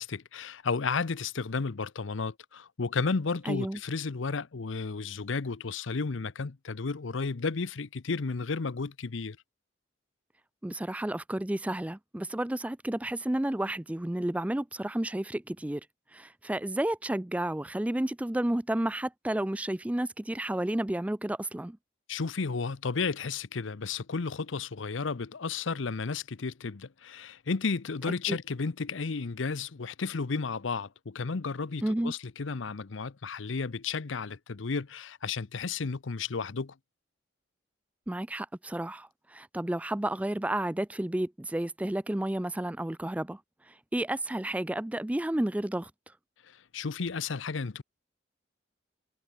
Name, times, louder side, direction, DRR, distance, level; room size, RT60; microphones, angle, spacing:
voice 1, 0.0-9.4 22.1-36.7 46.7-47.8, left 4 dB, 80° left, 0.7 m, -33 dB
voice 2, 3.5-3.8 10.6-15.8 16.1-21.8 28.3-28.4 31.8-32.1 38.1-43.4 43.9-45.9, right 1 dB, 5° right, 0.3 m, -31 dB
head